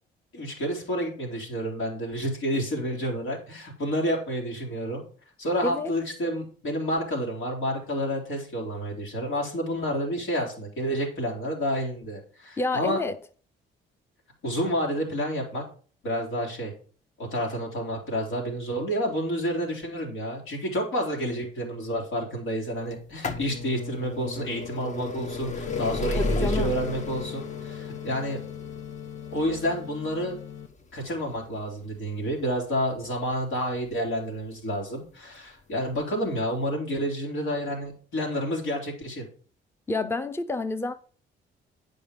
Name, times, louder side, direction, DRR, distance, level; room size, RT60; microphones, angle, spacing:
voice 1, 0.3-5.0 5.4-13.0 14.4-15.6 16.0-16.7 17.2-28.4 29.3-30.4 30.9-39.2, equal, 85° left, 3.2 m, -29 dB
voice 2, 12.6-13.2 26.1-26.7 39.9-40.9, left 2 dB, 10° left, 0.6 m, -28 dB
sound 1, 22.9-34.6 35.4-35.5 36.4-36.5 36.7-36.8, left 2 dB, 35° left, 0.9 m, -34 dB
sound 2, 25.7-30.7, left 10 dB, 65° left, 1.0 m, -38 dB
9.2 x 5.3 x 5.1 m
cardioid pair, 90°, 20 cm